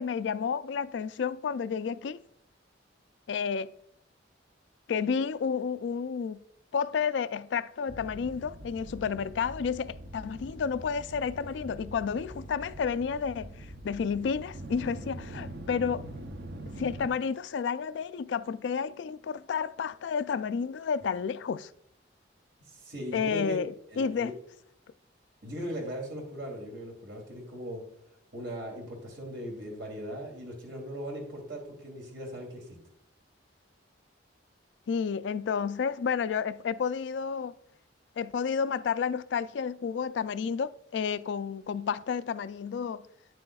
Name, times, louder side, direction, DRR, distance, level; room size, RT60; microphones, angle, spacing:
voice 1, 0.0-2.2 3.3-3.7 4.9-6.4 6.7-16.1 16.8-21.7 23.1-24.3 34.9-37.5 38.2-43.1, left 6 dB, 70° left, 0.3 m, -31 dB
sound 1, 7.9-17.1, right 1 dB, 60° right, 0.6 m, -43 dB
voice 2, 22.6-23.6 23.9-24.3 25.4-27.8 28.3-32.7, equal, 75° right, 2.8 m, -39 dB
9.6 x 7.5 x 2.3 m
head